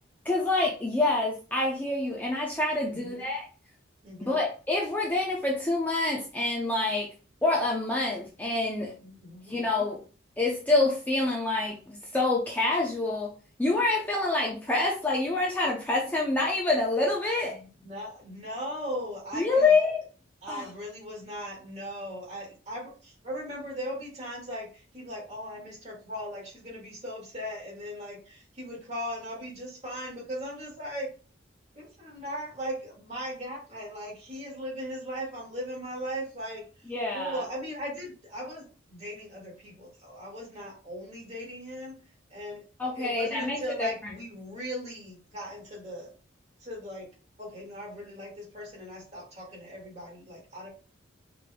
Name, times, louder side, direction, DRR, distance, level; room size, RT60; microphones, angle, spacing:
voice 1, 0.2-3.4 4.2-7.1 7.4-8.9 9.5-10.0 10.4-13.3 13.6-17.6 19.3-20.0 20.5-20.6 36.9-37.4 42.8-43.9, left 2 dB, 10° left, -3 dB, 0.6 m, -27 dB
voice 2, 2.9-3.2 4.0-4.4 9.0-9.6 17.5-19.7 20.4-31.1 31.7-41.9 42.3-42.6 42.9-46.1 46.6-47.1 47.4-50.7, equal, 35° right, -3 dB, 2.0 m, -38 dB
4.8 x 3.5 x 2.3 m, 0.36 s
head